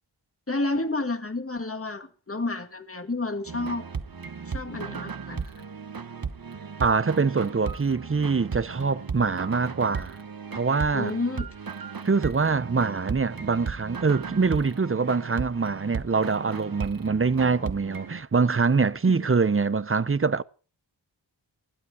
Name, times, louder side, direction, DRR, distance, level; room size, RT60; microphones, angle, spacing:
voice 1, 0.5-3.8 4.5-5.7 10.9-11.5 19.1-19.3, left 2 dB, 30° left, 1.8 m, -30 dB
sound 1, 3.5-18.2, right 5 dB, 50° right, 1.1 m, -36 dB
voice 2, 6.8-10.2 10.5-11.1 12.0-20.4, right 4 dB, 30° right, 0.6 m, -24 dB
20.5 x 12.0 x 4.8 m
wide cardioid pair, 65°, 46 cm